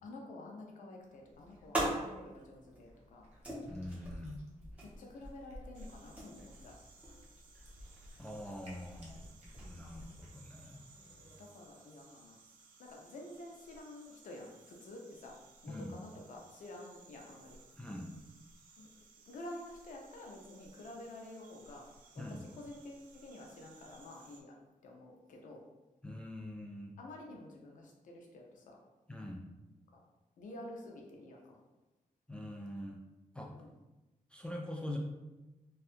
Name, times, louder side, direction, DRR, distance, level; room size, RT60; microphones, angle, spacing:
voice 1, 0.0-3.3 4.8-6.7 11.1-12.4 12.8-15.4 15.6-17.6 18.8-18.9 19.3-21.9 22.1-24.6 24.8-25.6 27.0-28.8 30.4-31.6 33.5-33.8, left 1 dB, 75° left, 0 dB, 0.5 m, -50 dB
sound 1, 1.0-11.4, right 1 dB, 10° right, 0.8 m, -44 dB
Cat, 1.3-10.3, equal, 55° right, 0.7 m, -54 dB
voice 2, 3.7-4.4 7.5-7.6 8.2-9.2 9.5-10.8 15.7-15.9 17.7-18.1 22.2-22.4 26.0-26.9 29.1-29.4 32.3-33.0 33.3-33.5 34.3-35.0, left 1 dB, 10° left, -1 dB, 0.3 m, -44 dB
sound 2, 5.7-24.4, right 4 dB, 90° right, 0.4 m, -61 dB
2.7 x 2.3 x 2.4 m, 1.1 s
cardioid pair, 105°, 13 cm